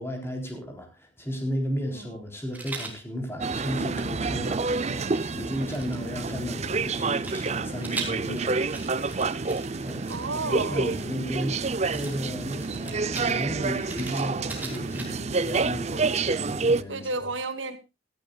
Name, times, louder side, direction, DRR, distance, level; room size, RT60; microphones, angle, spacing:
voice 1, 0.0-5.0 5.3-8.6 9.8-10.1 10.4-11.6 11.9-17.1, equal, 15° left, 3.8 m, -34 dB
voice 2, 1.9-2.2 10.1-10.9 16.9-17.8, right 3 dB, 85° right, 2.0 m, -32 dB
Rattle, 2.5-3.0 3.6-6.3 7.2-11.3 11.9-15.3, right 3 dB, 10° right, 3.3 m, -41 dB
sound 1, 3.4-16.8, right 3 dB, 35° right, 0.6 m, -28 dB
17.0 x 14.5 x 2.4 m
head